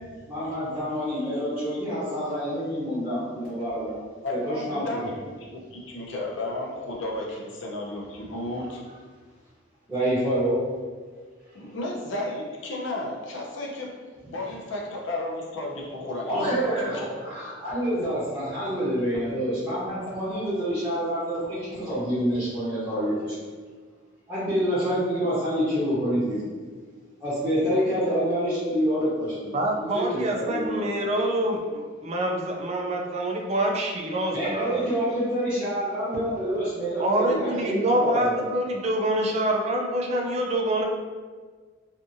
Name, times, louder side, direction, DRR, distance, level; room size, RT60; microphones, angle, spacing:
voice 1, 0.3-4.0 4.4-5.1 9.9-10.6 16.3-23.4 24.3-26.4 27.2-30.9 34.3-38.3, equal, 5° right, -12 dB, 0.8 m, -27 dB
voice 2, 4.2-8.8 11.5-13.9 14.3-16.6 16.8-17.2, left 1 dB, 70° left, -2 dB, 0.6 m, -33 dB
voice 3, 29.5-34.8 37.0-40.8, right 1 dB, 35° right, 1 dB, 0.3 m, -26 dB
2.6 x 2.5 x 2.6 m, 1.5 s
head